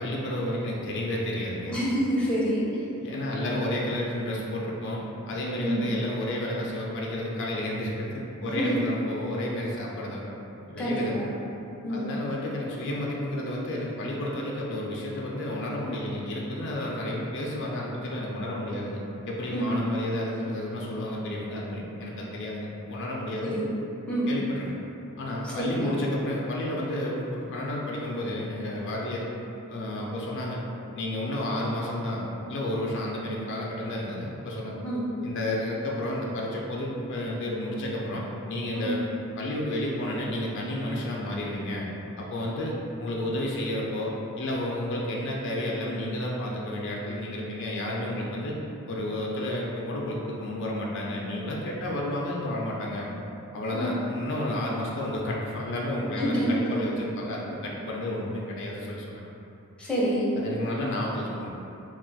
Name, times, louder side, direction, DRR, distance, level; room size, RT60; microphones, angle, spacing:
voice 1, 0.0-1.7 3.0-5.0 5.3-10.2 10.6-11.2 11.9-19.0 19.3-23.5 24.3-24.7 25.2-29.2 29.7-30.6 30.9-32.2 32.5-34.8 35.2-39.1 39.4-41.9 42.2-42.7 43.0-48.5 48.9-53.1 53.5-56.4 56.7-59.3 60.4-61.5, left 1 dB, 55° left, -3 dB, 0.4 m, -31 dB
voice 2, 1.7-2.8 5.6-5.8 8.6-8.7 10.8-11.3 11.8-12.1 19.5-19.7 23.4-23.7 24.1-24.4 25.4-25.9 34.8-35.0 38.7-38.9 53.7-54.0 56.2-56.7 59.8-60.3, equal, 5° left, -8 dB, 0.5 m, -27 dB
2.4 x 2.4 x 3.8 m, 2.9 s
head